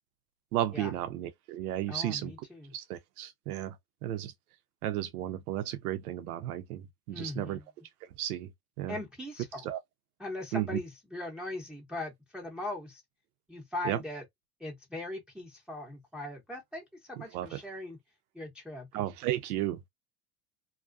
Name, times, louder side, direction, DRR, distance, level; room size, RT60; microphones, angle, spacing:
voice 1, 0.5-2.3 2.7-3.8 4.0-4.3 4.8-7.6 8.2-8.5 8.8-9.0 9.6-9.8 10.5-10.8 13.8-14.0 17.3-17.6 18.9-19.9, right 13 dB, 75° right, 0.7 m, -33 dB
voice 2, 1.9-2.7 7.1-7.6 8.9-9.7 10.2-13.0 13.5-14.2 14.6-18.0 18.3-18.9, left 2 dB, ahead, 0.8 m, -40 dB
2.4 x 2.2 x 2.4 m
hypercardioid pair, 80°, 44 cm